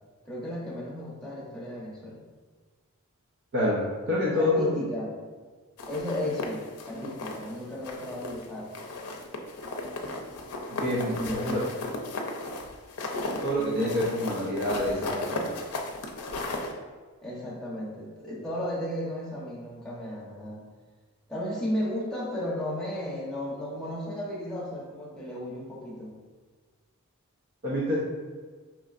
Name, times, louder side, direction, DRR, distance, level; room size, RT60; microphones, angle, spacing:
voice 1, 0.2-2.2 4.4-5.1 5.9-8.7 11.2-11.6 17.2-20.6 21.3-26.2, left 1 dB, 5° left, -6 dB, 0.8 m, -34 dB
voice 2, 3.5-4.7 10.7-11.6 13.4-15.5 27.6-28.0, left 1 dB, 45° right, -6 dB, 0.6 m, -27 dB
sound 1, 5.8-7.5 7.8-8.5 8.7-16.7, left 2 dB, 85° left, 0.6 m, -35 dB
5.2 x 3.1 x 2.4 m, 1.5 s
head